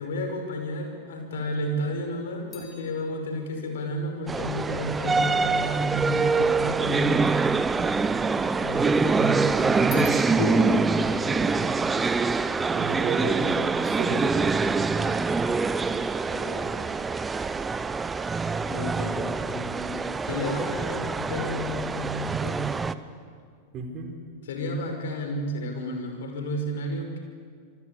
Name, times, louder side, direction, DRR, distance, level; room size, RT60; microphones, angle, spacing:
voice 1, 0.0-7.5 8.6-10.9 14.9-15.1 16.3-17.0 18.7-22.9 24.4-27.2, equal, 60° left, 4 dB, 5.6 m, -31 dB
sound 1, 2.5-6.0 6.7-7.6 7.8-9.0 9.3-12.8 13.1-13.6, left 6 dB, 30° left, 5.1 m, -50 dB
sound 2, 4.3-22.9, right 4 dB, 15° right, 0.9 m, -25 dB
voice 2, 6.9-7.3 11.1-11.7 12.7-14.3 23.7-24.1, right 5 dB, 35° right, 4 dB, 4.6 m, -33 dB
27.5 x 24.5 x 8.4 m, 2.1 s
figure-of-eight pair, 90°, 0 cm